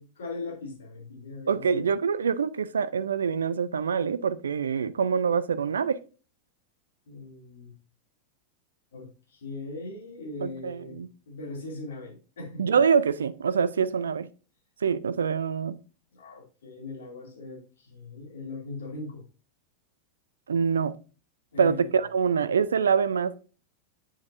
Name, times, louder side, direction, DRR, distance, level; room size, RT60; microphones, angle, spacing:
voice 1, 0.0-1.9 7.1-7.8 8.9-12.8 13.8-13.9 16.1-19.3 21.5-21.9, left 3 dB, 65° left, 2.6 m, -40 dB
voice 2, 1.5-6.0 10.4-11.1 12.6-14.3 14.8-15.8 20.5-21.0 21.6-23.3, right 6 dB, 70° right, 0.4 m, -25 dB
7.8 x 7.3 x 2.6 m
figure-of-eight pair, 90°, 0 cm